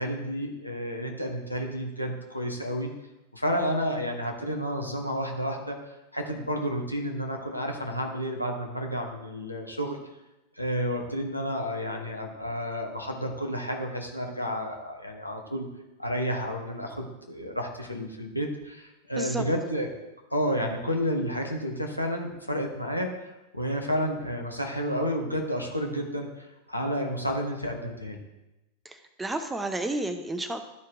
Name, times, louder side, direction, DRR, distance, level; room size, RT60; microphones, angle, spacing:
voice 1, 0.0-2.9 3.3-5.8 6.1-10.0 10.6-15.7 16.0-19.9 20.3-23.1 23.5-28.2, equal, 90° left, 1 dB, 1.1 m, -31 dB
voice 2, 28.8-30.6, right 2 dB, 10° right, 8 dB, 0.6 m, -31 dB
12.0 x 4.6 x 3.5 m, 0.99 s
figure-of-eight pair, 90°, 0 cm